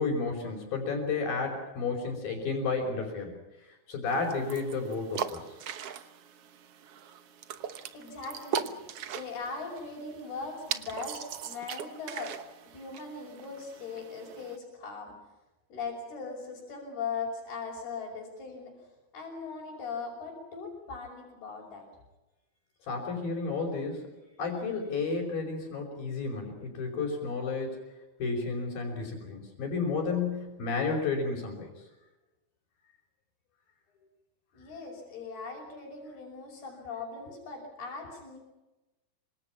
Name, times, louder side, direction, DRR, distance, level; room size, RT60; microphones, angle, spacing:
voice 1, 0.0-3.4 3.9-5.6 22.9-24.1 24.4-27.8 28.2-31.8, left 4 dB, 65° left, -4 dB, 6.6 m, -32 dB
sound 1, 4.1-14.6, right 8 dB, 70° right, 1.4 m, -40 dB
voice 2, 7.9-8.8 9.1-12.4 12.7-15.1 15.7-18.7 19.1-21.9 34.5-38.4, left 4 dB, 85° left, -3 dB, 7.5 m, -39 dB
27.0 x 26.0 x 5.9 m, 1.1 s
omnidirectional pair, 4.4 m